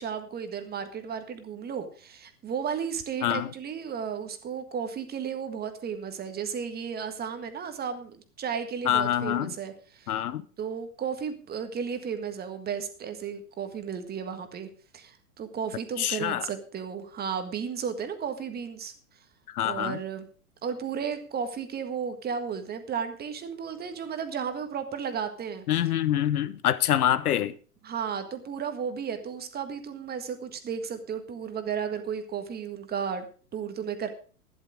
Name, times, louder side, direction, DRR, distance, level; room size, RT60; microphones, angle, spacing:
voice 1, 0.0-10.1 10.6-14.7 14.9-18.9 19.6-20.3 20.6-25.6 27.8-33.3 33.5-34.1, right 7 dB, 20° right, 1.7 m, -34 dB
voice 2, 8.8-9.5 10.1-10.4 16.0-16.5 19.5-20.0 25.7-27.5, left 11 dB, 70° left, 0.9 m, -26 dB
12.0 x 11.0 x 4.8 m
hypercardioid pair, 115°, 46 cm